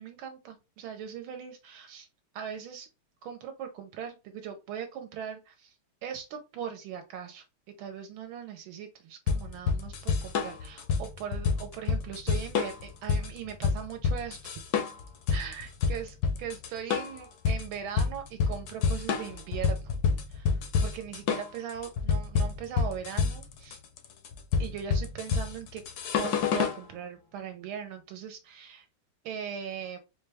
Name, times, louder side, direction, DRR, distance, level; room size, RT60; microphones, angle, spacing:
voice 1, 0.0-2.1 2.3-2.9 3.2-5.7 6.0-7.4 7.8-14.6 15.3-19.9 20.3-23.8 24.6-25.8 26.1-28.9 29.2-30.0, right 8 dB, 75° right, 6 dB, 1.4 m, -40 dB
sound 1, 9.3-26.8, left 5 dB, 75° left, 0.9 m, -28 dB
4.5 x 2.2 x 3.3 m, 0.27 s
omnidirectional pair, 2.3 m